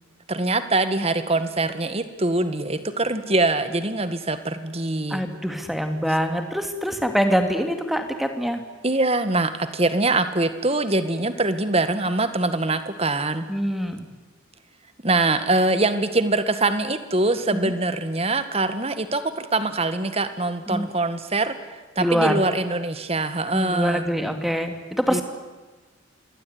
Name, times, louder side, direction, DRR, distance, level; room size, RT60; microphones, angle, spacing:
voice 1, 0.3-5.2 8.8-13.5 15.0-24.0 25.1-25.2, right 2 dB, 30° right, 10 dB, 1.8 m, -23 dB
voice 2, 5.1-8.6 13.5-14.1 17.5-17.7 20.7-20.9 22.0-22.3 23.5-25.2, equal, ahead, 6 dB, 2.5 m, -24 dB
27.0 x 22.0 x 9.7 m, 1.3 s
head